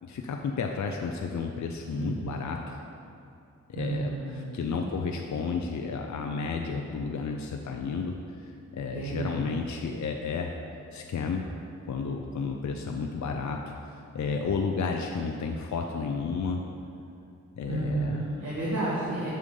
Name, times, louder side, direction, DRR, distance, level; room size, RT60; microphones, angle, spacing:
voice 1, 0.0-2.9 3.7-8.2 8.4-10.5 10.9-11.5 11.9-16.6 17.6-18.2, left 5 dB, 60° left, 2 dB, 0.6 m, -32 dB
voice 2, 1.9-2.3 3.7-4.8 8.9-9.5 12.8-12.9 17.7-19.3, right 2 dB, 60° right, -8 dB, 1.8 m, -32 dB
6.8 x 6.3 x 5.4 m, 2.6 s
cardioid pair, 65°, 32 cm